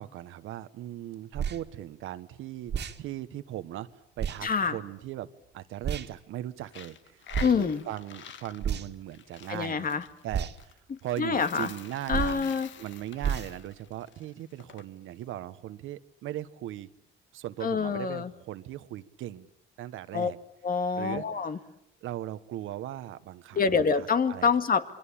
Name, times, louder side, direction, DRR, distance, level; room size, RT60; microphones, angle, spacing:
voice 1, 0.0-2.7 3.0-3.9 4.2-5.3 5.5-9.9 10.2-16.9 17.3-19.5 19.8-20.4 21.0-21.2 22.0-24.5, right 13 dB, 85° right, 13 dB, 1.4 m, -39 dB
sound 1, 1.3-1.6 2.7-3.0 4.2-4.4 5.8-6.1 7.3-7.6 8.6-9.0 10.3-10.5 12.1-12.4 13.2-13.5, right 7 dB, 60° right, 2.2 m, -30 dB
voice 2, 4.4-4.8 7.4-7.8 9.5-10.1 10.9-11.7 12.1-12.7 17.6-18.3 20.1-20.3 20.6-21.6 23.5-24.8, left 5 dB, 45° left, 9 dB, 2.1 m, -26 dB
Coin (dropping), 6.6-14.8, left 8 dB, 70° left, 1.6 m, -48 dB
28.0 x 23.0 x 8.8 m, 0.74 s
cardioid pair, 90°, 20 cm